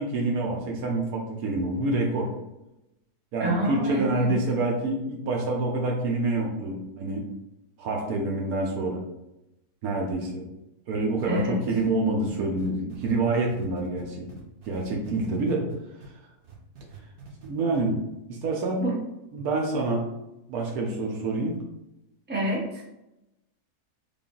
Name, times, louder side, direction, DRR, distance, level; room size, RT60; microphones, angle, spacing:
voice 1, 0.0-2.3 3.3-7.3 7.8-9.0 9.8-10.5 10.9-14.3 14.7-15.7 17.4-18.0 18.3-18.8 19.3-20.0 20.5-21.6, right 2 dB, 70° right, 0 dB, 1.2 m, -27 dB
voice 2, 3.4-4.3 11.3-11.6 18.8-18.9 22.3-22.9, right 1 dB, 10° right, -5 dB, 0.7 m, -28 dB
sound 1, 11.2-16.1 16.4-17.5 17.7-17.8, right 5 dB, 50° right, 0.7 m, -46 dB
3.5 x 2.5 x 3.6 m, 0.91 s
omnidirectional pair, 1.7 m